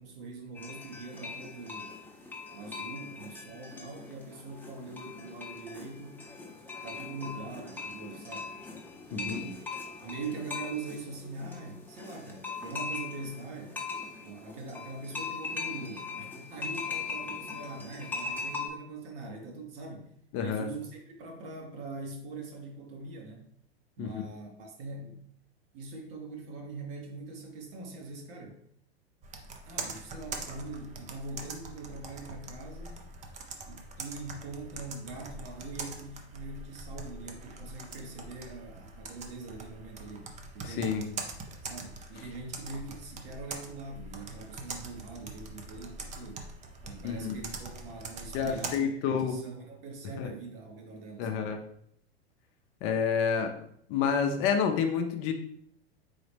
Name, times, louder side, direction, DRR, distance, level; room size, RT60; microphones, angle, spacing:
voice 1, 0.0-2.0 2.5-6.3 6.8-8.5 9.1-9.6 10.0-13.8 14.2-23.5 24.0-25.2 25.7-28.6 29.6-33.0 33.7-40.3 40.5-41.3 41.6-46.4 46.8-51.5, right 3 dB, 60° right, 1 dB, 1.3 m, -42 dB
sound 1, 0.5-18.7, left 4 dB, 5° left, 0.8 m, -40 dB
voice 2, 20.3-20.7 24.0-24.2 40.6-41.0 47.0-47.4 48.3-49.4 50.2-50.3 51.2-51.6 52.8-53.5 53.9-55.3, left 7 dB, 40° left, 5 dB, 0.6 m, -29 dB
Computer keyboard, 29.2-48.8, right 3 dB, 20° right, 0.6 m, -43 dB
4.0 x 3.9 x 3.3 m, 0.67 s
hypercardioid pair, 100°, 33 cm